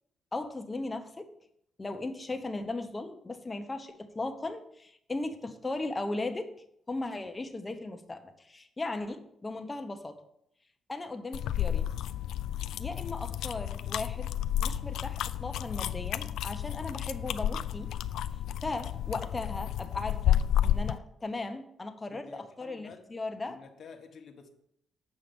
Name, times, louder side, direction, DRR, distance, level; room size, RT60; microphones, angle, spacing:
voice 1, 0.3-1.3 1.8-6.5 6.9-10.2 10.9-11.9 12.8-14.3 14.6-17.9 18.6-23.6, left 2 dB, 20° left, 6 dB, 1.0 m, -37 dB
sound 1, 11.3-21.0, left 11 dB, 90° left, 0.3 m, -31 dB
voice 2, 22.1-23.1 23.5-24.5, left 5 dB, 55° left, 3 dB, 1.1 m, -50 dB
7.7 x 5.5 x 5.3 m, 0.72 s
cardioid pair, 115°, 0 cm